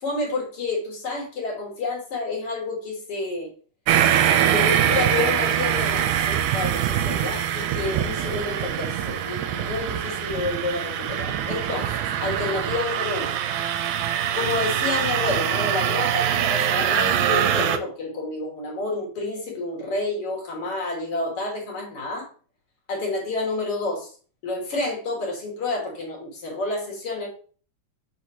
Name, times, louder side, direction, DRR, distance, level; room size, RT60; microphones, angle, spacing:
voice 1, 0.0-3.5 4.5-11.9 12.2-13.4 14.3-22.3 22.9-24.1 24.4-27.3, left 3 dB, 50° left, -1 dB, 2.6 m, -29 dB
sound 1, 3.9-17.8, right 10 dB, 85° right, 2.1 m, -23 dB
6.2 x 5.2 x 2.9 m, 0.40 s
omnidirectional pair, 3.5 m